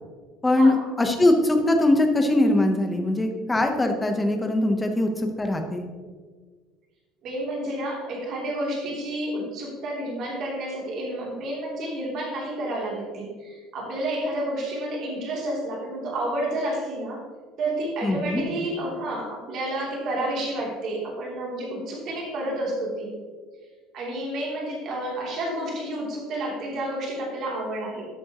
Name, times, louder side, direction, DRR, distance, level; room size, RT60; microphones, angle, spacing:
voice 1, 0.4-5.8 18.0-18.5, left 1 dB, 10° left, 4 dB, 1.0 m, -21 dB
voice 2, 7.2-17.2 17.6-23.1 23.9-28.1, right 1 dB, 45° right, -3 dB, 3.2 m, -30 dB
13.0 x 8.7 x 3.1 m, 1.5 s
cardioid pair, 175°, 0 cm